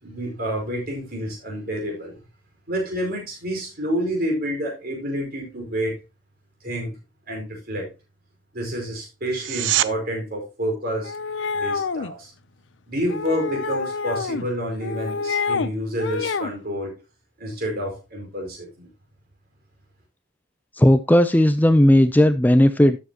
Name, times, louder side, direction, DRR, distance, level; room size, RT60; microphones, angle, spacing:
voice 1, 0.0-2.2 2.7-6.0 6.6-7.0 7.3-7.9 8.5-11.1 11.5-12.3 12.9-17.0 17.4-18.9, equal, 55° right, 1 dB, 4.8 m, -28 dB
sound 1, 9.3-9.9 21.3-21.4, right 13 dB, 80° right, 0.6 m, -23 dB
sound 2, 11.0-12.1 13.1-14.5 14.8-15.7 16.0-16.5, left 5 dB, 75° left, 0.6 m, -27 dB
voice 2, 20.8-23.0, left 1 dB, 10° left, 12 dB, 0.4 m, -15 dB
13.0 x 7.3 x 2.9 m, 0.27 s
head